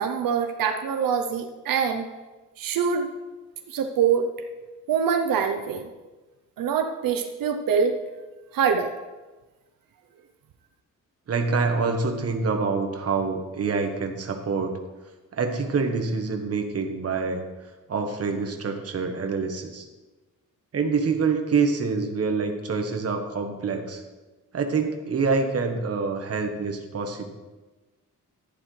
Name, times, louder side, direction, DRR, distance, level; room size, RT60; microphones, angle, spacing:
voice 1, 0.0-2.1 2.6-3.1 3.7-4.3 4.9-5.9 6.6-8.0 8.5-8.9, right 7 dB, 90° right, 6 dB, 0.7 m, -24 dB
voice 2, 11.3-14.8 15.3-17.4 17.9-19.9 20.7-24.0 24.5-27.2, right 4 dB, 45° right, 4 dB, 1.2 m, -26 dB
11.5 x 10.5 x 3.3 m, 1.2 s
wide cardioid pair, 150°, 33 cm